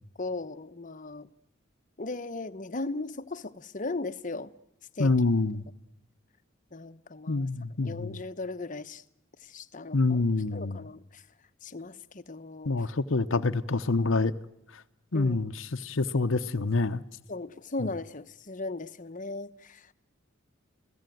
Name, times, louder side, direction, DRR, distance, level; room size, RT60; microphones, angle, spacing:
voice 1, 0.2-1.3 2.0-4.5 4.9-5.1 6.7-7.5 7.8-9.0 9.4-10.2 10.5-11.2 11.6-12.9 15.1-15.4 17.3-19.9, left 3 dB, 40° left, 1.1 m, -37 dB
voice 2, 5.0-5.6 7.3-8.2 9.9-10.8 12.6-14.3 15.1-17.0 17.8-17.9, left 3 dB, 70° left, 0.9 m, -26 dB
30.0 x 17.0 x 9.3 m
head